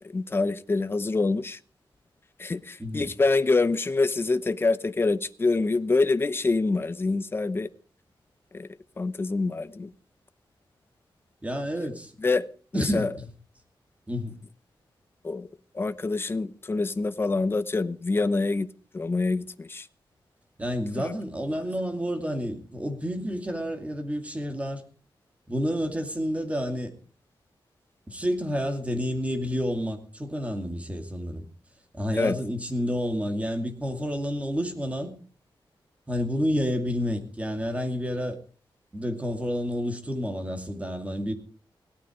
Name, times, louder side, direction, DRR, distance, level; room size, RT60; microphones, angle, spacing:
voice 1, 0.1-1.6 2.4-7.7 8.5-8.7 9.0-9.9 12.2-12.5 12.7-13.1 15.2-15.5 15.7-18.7 18.9-19.9 21.0-21.1 32.1-32.4, left 3 dB, 25° left, 0.8 m, -26 dB
voice 2, 11.4-12.1 12.7-13.1 14.1-14.4 20.6-24.8 25.5-26.9 28.1-31.4 31.9-35.1 36.1-38.4 38.9-41.3, equal, 15° right, 2.4 m, -29 dB
17.5 x 12.5 x 5.0 m
wide cardioid pair, 170°, 9 cm